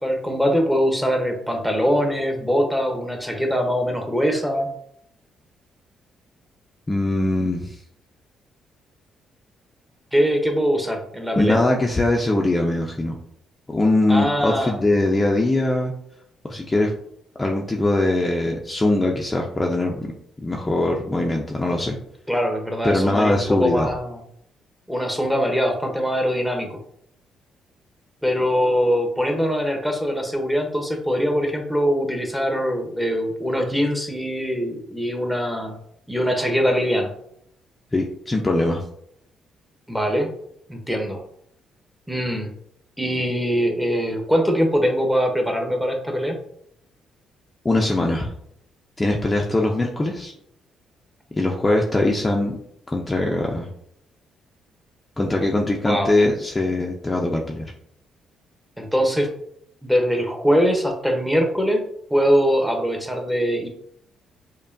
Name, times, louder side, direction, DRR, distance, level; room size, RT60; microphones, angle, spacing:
voice 1, 0.0-4.7 10.1-11.6 14.1-14.7 22.3-24.2 24.9-26.8 28.2-35.8 36.1-37.1 39.9-40.3 40.7-41.2 42.1-42.5 43.0-46.4 55.8-56.1 58.8-59.3 59.8-61.8 62.1-63.7, equal, 5° right, 2 dB, 0.8 m, -22 dB
voice 2, 6.9-7.8 11.4-13.2 13.7-15.9 16.4-16.9 17.4-20.1 20.4-22.0 22.8-23.9 37.9-38.8 47.6-48.3 49.0-50.3 51.3-52.6 52.9-53.7 55.2-57.7, left 2 dB, 20° left, 0 dB, 0.5 m, -21 dB
5.3 x 2.2 x 2.6 m, 0.71 s
cardioid pair, 90°, 0 cm